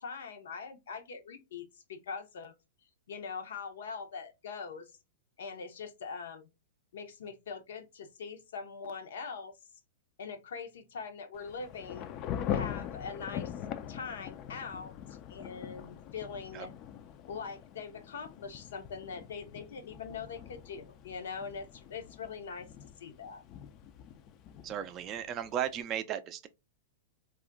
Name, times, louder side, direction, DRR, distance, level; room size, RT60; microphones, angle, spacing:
voice 1, 0.0-2.5 3.1-4.9 5.4-6.5 6.9-9.5 10.2-12.1 12.5-13.5 13.9-16.7 17.3-22.7 23.0-23.4, left 5 dB, 75° left, 0.6 m, -42 dB
Thunder / Rain, 11.3-25.8, left 9 dB, 40° left, 0.3 m, -42 dB
voice 2, 24.6-26.5, right 10 dB, 35° right, 0.4 m, -35 dB
2.3 x 2.1 x 3.6 m
hypercardioid pair, 125°, 0 cm